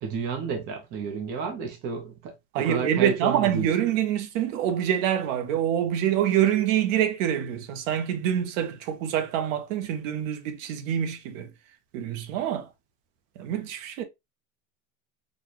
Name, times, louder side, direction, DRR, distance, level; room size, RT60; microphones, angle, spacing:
voice 1, 0.0-3.9, right 6 dB, 25° right, 0.6 m, -31 dB
voice 2, 2.5-11.5 11.9-12.7 13.4-14.0, right 10 dB, 65° right, 0.9 m, -26 dB
4.1 x 2.3 x 3.0 m
cardioid pair, 180°, 42 cm